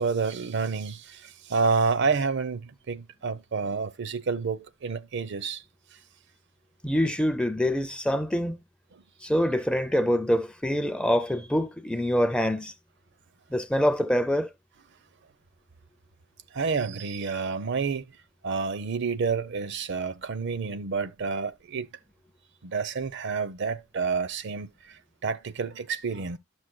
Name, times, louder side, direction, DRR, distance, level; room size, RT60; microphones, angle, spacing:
voice 1, 0.0-5.6 8.9-9.0 16.5-18.1 18.4-21.9 22.6-26.4, right 5 dB, 60° right, 0.6 m, -29 dB
voice 2, 6.8-8.6 9.2-12.7 13.5-14.5, equal, 5° left, 0.4 m, -25 dB
12.0 x 6.4 x 2.2 m
head